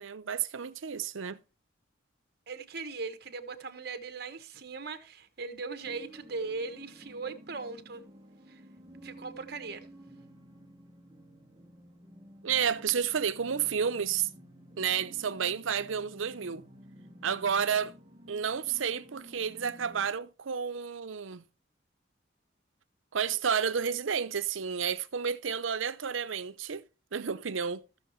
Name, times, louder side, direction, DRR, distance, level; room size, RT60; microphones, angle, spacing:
voice 1, 0.0-1.4 12.4-14.3 14.8-16.7 17.2-17.9 18.3-21.4 23.1-26.8 27.1-27.8, right 7 dB, 90° right, 0.7 m, -31 dB
voice 2, 2.5-8.0 8.5-8.6 9.0-9.9, right 4 dB, 55° right, 1.2 m, -39 dB
sound 1, 5.8-20.1, equal, 20° right, 1.1 m, -52 dB
15.0 x 6.4 x 3.1 m
head